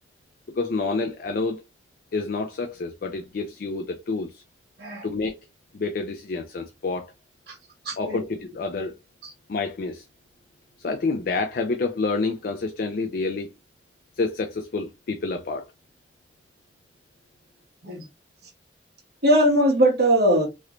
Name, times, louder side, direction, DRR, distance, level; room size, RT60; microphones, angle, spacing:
voice 1, 0.5-1.6 2.1-4.4 5.0-5.4 5.7-7.1 8.0-9.0 9.5-10.0 10.8-13.5 14.2-15.7, left 3 dB, 55° left, 0.4 m, -28 dB
voice 2, 7.9-8.2 17.8-18.0 19.2-20.5, right 1 dB, 60° right, 1.2 m, -20 dB
3.1 x 3.0 x 2.5 m
head